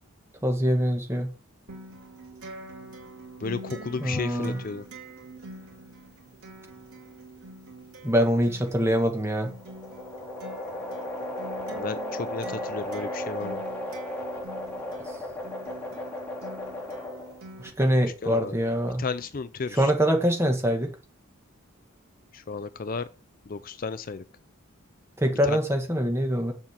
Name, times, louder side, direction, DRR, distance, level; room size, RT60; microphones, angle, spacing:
voice 1, 0.4-1.3 4.0-4.6 8.0-9.5 17.6-19.0 19.7-20.9 25.2-26.5, equal, 10° right, 1.5 m, -24 dB
Acoustic guitar, 1.7-17.7, right 1 dB, 85° right, 3.6 m, -45 dB
voice 2, 3.4-4.8 11.8-13.6 18.2-18.6 19.0-19.9 22.3-23.1 23.5-24.2 25.4-25.6, left 4 dB, 40° left, 0.4 m, -33 dB
sound 1, 9.4-17.5, left 1 dB, 5° left, 3.6 m, -35 dB
7.3 x 5.4 x 7.4 m
head